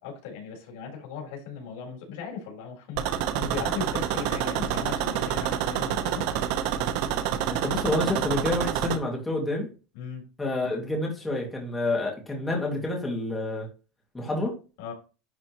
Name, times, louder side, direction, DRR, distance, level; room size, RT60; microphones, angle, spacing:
voice 1, 0.0-6.2 9.9-10.2 14.8-14.9, left 6 dB, 80° left, 0 dB, 3.9 m, -37 dB
sound 1, 3.0-9.0, right 10 dB, 65° right, 0.9 m, -28 dB
voice 2, 7.5-9.7 10.4-13.7 14.1-14.5, left 2 dB, 10° left, -1 dB, 2.2 m, -28 dB
11.0 x 4.1 x 3.0 m, 0.32 s
cardioid pair, 155°, 0 cm